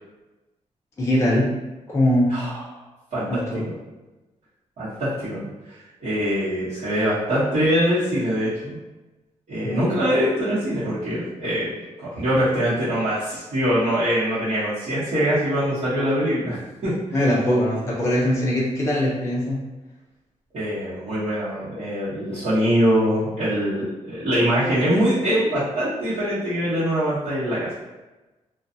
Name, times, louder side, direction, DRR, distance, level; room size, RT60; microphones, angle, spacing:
voice 1, 1.0-1.5 1.9-2.4 3.3-3.6 9.6-9.9 17.1-19.6, left 1 dB, 25° left, -6 dB, 0.5 m, -21 dB
voice 2, 2.3-2.6 3.1-3.3 3.5-3.7 4.8-5.5 6.0-8.8 9.5-16.9 20.5-27.7, equal, 65° right, -14 dB, 1.0 m, -23 dB
2.5 x 2.3 x 2.6 m, 1.1 s
wide cardioid pair, 150°, 12 cm